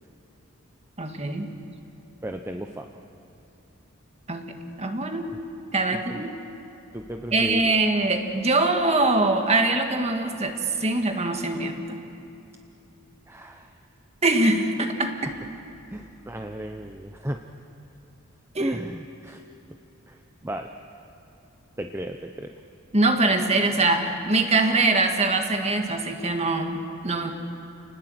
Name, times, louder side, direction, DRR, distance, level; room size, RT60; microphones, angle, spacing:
voice 1, 1.0-1.5 4.3-5.3 5.7-6.3 7.3-12.0 14.2-15.2 18.6-18.8 22.9-27.3, right 2 dB, 30° right, 5 dB, 1.8 m, -23 dB
voice 2, 2.2-2.9 5.9-6.2 6.9-7.8 13.3-13.7 15.2-15.3 15.9-17.4 18.6-19.4 20.1-20.7 21.8-22.5, right 1 dB, 10° right, 4 dB, 0.7 m, -34 dB
30.0 x 19.5 x 7.9 m, 2.8 s
head